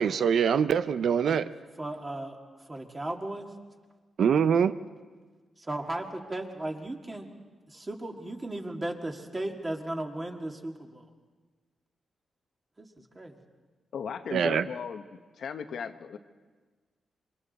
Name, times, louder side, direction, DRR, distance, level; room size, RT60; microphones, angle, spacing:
voice 1, 0.0-1.5 4.2-4.7 14.3-14.7, right 7 dB, 70° right, 13 dB, 0.5 m, -24 dB
voice 2, 1.8-2.4 2.7-3.5 5.6-7.3 7.7-11.1 12.8-13.4, right 1 dB, 20° right, 3 dB, 1.9 m, -36 dB
voice 3, 13.9-16.2, left 7 dB, 70° left, 8 dB, 0.9 m, -37 dB
27.5 x 23.5 x 4.1 m, 1.4 s
wide cardioid pair, 120°, 0 cm